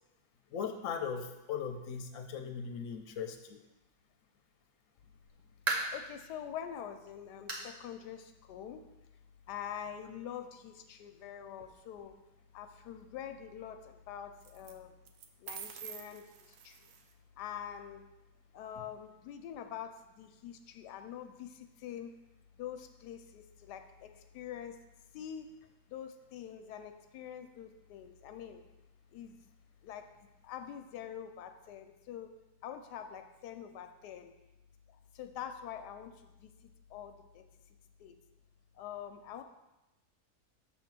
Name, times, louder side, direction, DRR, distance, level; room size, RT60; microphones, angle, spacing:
voice 1, 0.5-3.6, left 7 dB, 60° left, 5 dB, 1.0 m, -38 dB
sound 1, 5.0-6.1 6.6-6.7 7.5-7.8 8.1-8.2 8.7-8.8 9.9-10.0, right 2 dB, 30° right, 0.8 m, -36 dB
voice 2, 5.7-8.8 9.5-12.2 12.5-15.0 15.4-16.9 17.4-18.0 18.5-22.1 22.5-24.8 25.1-25.5 25.9-28.6 29.1-29.5 29.8-30.1 30.4-32.3 32.6-34.3 34.9-37.4 38.0-38.2 38.7-39.4, left 9 dB, 85° left, 7 dB, 1.2 m, -45 dB
sound 2, 11.5-12.1 14.4-14.7 15.1-17.1, right 9 dB, 75° right, 1.1 m, -48 dB
6.8 x 3.5 x 6.0 m, 0.99 s
omnidirectional pair, 1.7 m